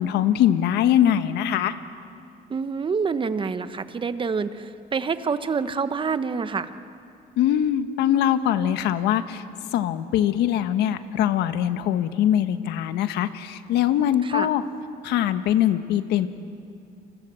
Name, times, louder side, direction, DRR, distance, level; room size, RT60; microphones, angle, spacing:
voice 1, 0.0-1.7 7.4-9.4 9.7-14.6 15.0-16.3, left 11 dB, 85° left, 10 dB, 1.4 m, -22 dB
voice 2, 2.5-6.7 14.2-14.5, right 5 dB, 30° right, 11 dB, 1.3 m, -27 dB
28.5 x 25.0 x 7.7 m, 2.4 s
cardioid pair, 110°, 17 cm